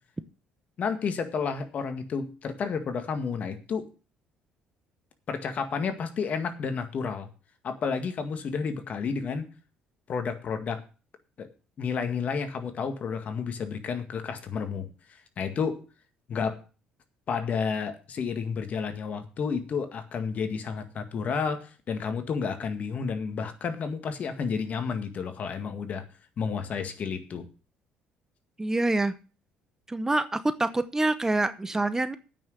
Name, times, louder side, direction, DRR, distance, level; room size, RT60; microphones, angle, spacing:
voice 1, 0.8-3.9 5.3-7.3 7.6-9.5 10.1-10.8 11.4-11.5 11.8-15.8 16.3-16.6 17.3-26.1 26.4-27.5, left 5 dB, 50° left, 8 dB, 1.9 m, -31 dB
voice 2, 28.6-29.1 29.9-32.2, right 2 dB, 15° right, 13 dB, 0.9 m, -26 dB
9.0 x 6.3 x 8.0 m, 0.35 s
supercardioid pair, 75°, 3 cm